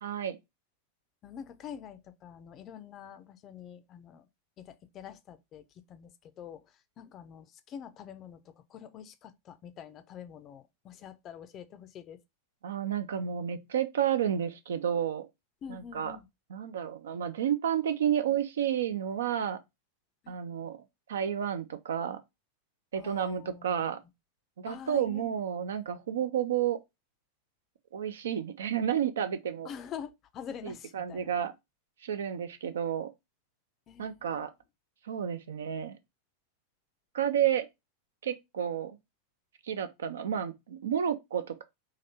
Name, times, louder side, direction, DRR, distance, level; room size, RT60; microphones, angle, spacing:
voice 1, 0.0-0.4 12.6-15.3 15.7-16.2 16.5-19.6 20.3-20.8 21.1-22.2 22.9-24.0 24.6-26.8 27.9-29.7 30.6-31.5 32.0-33.1 34.0-34.5 35.1-36.0 37.1-37.7 38.2-39.0 39.6-41.6, right 9 dB, 65° right, 0.6 m, -31 dB
voice 2, 1.2-4.3 4.6-6.6 7.0-12.2 15.6-16.3 20.2-20.4 23.0-23.7 24.7-25.3 25.8-25.9 29.6-31.3 33.9-34.5, left 8 dB, 30° left, 0.5 m, -46 dB
4.1 x 2.5 x 4.2 m
figure-of-eight pair, 90°, 0 cm